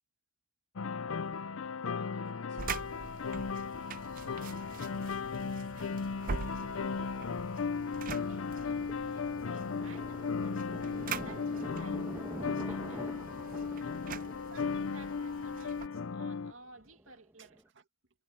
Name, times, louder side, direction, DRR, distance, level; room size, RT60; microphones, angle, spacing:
sound 1, 0.8-16.5, left 5 dB, 80° left, 0.6 m, -36 dB
voice 1, 0.9-6.5 14.2-14.3 17.4-17.9, right 3 dB, 65° right, 2.0 m, -62 dB
Thunder, 1.6-1.7 3.0-4.1 4.6-4.9 5.3-17.7, right 1 dB, 10° right, 1.4 m, -48 dB
sound 2, 2.6-15.9, right 6 dB, 45° right, 0.5 m, -45 dB
voice 2, 8.1-10.6 11.1-14.0 14.5-17.6, right 3 dB, 90° right, 2.5 m, -56 dB
head